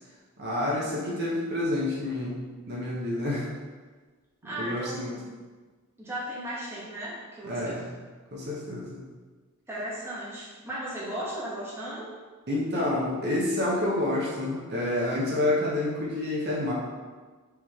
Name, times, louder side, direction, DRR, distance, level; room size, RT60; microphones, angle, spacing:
voice 1, 0.4-3.5 4.6-5.1 7.4-7.9 8.3-9.0 12.5-16.7, left 1 dB, 50° right, -5 dB, 0.8 m, -28 dB
voice 2, 4.4-5.3 6.0-7.8 9.7-12.1, right 1 dB, 10° right, -8 dB, 1.1 m, -36 dB
4.7 x 3.1 x 3.5 m, 1.4 s
head